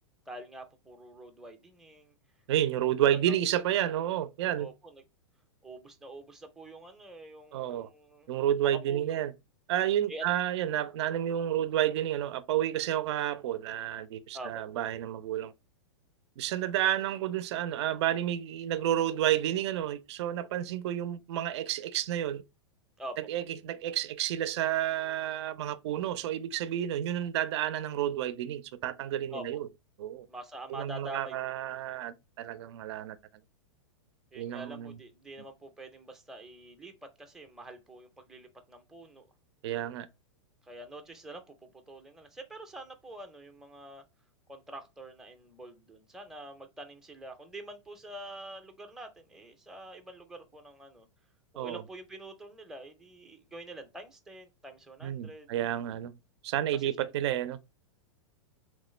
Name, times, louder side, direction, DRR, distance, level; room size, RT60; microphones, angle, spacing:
voice 1, 0.3-2.1 3.0-3.4 4.6-5.0 5.6-8.3 8.6-9.2 10.1-10.3 14.3-14.6 23.0-23.2 29.3-29.4 30.3-31.4 34.3-36.9 37.2-39.3 40.6-44.0 44.5-51.1 51.5-55.5 56.7-57.1, right 1 dB, 5° right, 0.5 m, -46 dB
voice 2, 2.5-4.7 7.5-7.9 8.3-9.3 9.7-15.5 16.4-22.4 23.3-29.7 30.0-30.3 30.7-33.2 34.3-35.0 39.6-40.1 51.6-51.8 55.0-56.1 56.4-57.6, right 11 dB, 60° right, 0.4 m, -30 dB
3.2 x 2.0 x 3.1 m
hypercardioid pair, 125°, 16 cm